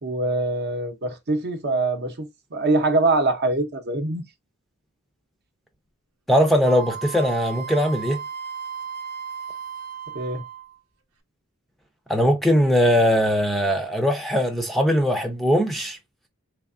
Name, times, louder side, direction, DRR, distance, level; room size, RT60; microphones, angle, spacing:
voice 1, 0.0-4.2 10.1-10.4, right 2 dB, 50° right, 0.7 m, -24 dB
voice 2, 6.3-8.2 12.1-16.0, equal, ahead, 0.5 m, -20 dB
Wind instrument woodwind instrument, 6.6-10.8, right 7 dB, 85° right, 0.8 m, -35 dB
3.4 x 3.3 x 2.4 m
head